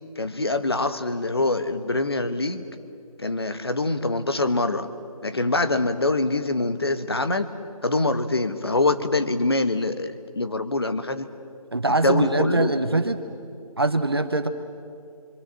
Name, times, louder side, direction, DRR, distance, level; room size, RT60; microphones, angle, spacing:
voice 1, 0.2-2.6 3.2-4.9 5.2-7.5 7.8-11.3 11.9-12.7, left 2 dB, 40° left, 10 dB, 1.2 m, -24 dB
voice 2, 11.7-13.2 13.8-14.5, right 2 dB, 40° right, 8 dB, 1.1 m, -23 dB
26.0 x 25.5 x 7.5 m, 2.4 s
figure-of-eight pair, 180°, 19 cm